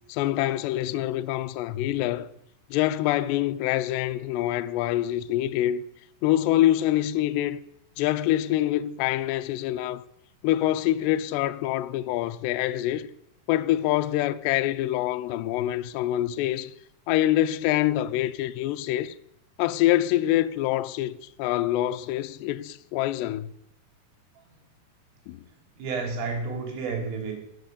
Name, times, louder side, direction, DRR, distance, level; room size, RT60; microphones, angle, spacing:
voice 1, 0.1-2.3 2.7-5.8 6.2-7.6 8.0-10.0 10.4-13.1 13.5-16.7 17.1-19.2 19.6-23.5 25.3-25.4, left 14 dB, 85° left, 2.4 m, -25 dB
voice 2, 25.8-27.3, right 4 dB, 85° right, 5.8 m, -30 dB
17.0 x 9.3 x 6.8 m
omnidirectional pair, 5.7 m